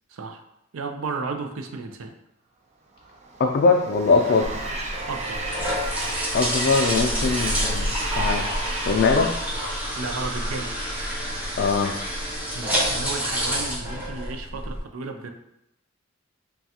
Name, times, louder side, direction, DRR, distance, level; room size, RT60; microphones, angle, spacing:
voice 1, 0.1-0.4 0.7-2.1 4.4-4.6 5.1-5.5 10.0-10.7 12.5-15.3, right 4 dB, 85° right, 5 dB, 0.5 m, -33 dB
Train, 3.0-10.4, right 2 dB, 35° right, 0.5 m, -34 dB
voice 2, 3.4-4.5 6.3-9.3 9.6-9.7 11.6-11.9, left 4 dB, 50° left, 2 dB, 0.3 m, -22 dB
sound 1, 4.4-14.8, equal, 5° right, 1.0 m, -28 dB
5.6 x 2.3 x 2.8 m, 0.84 s
head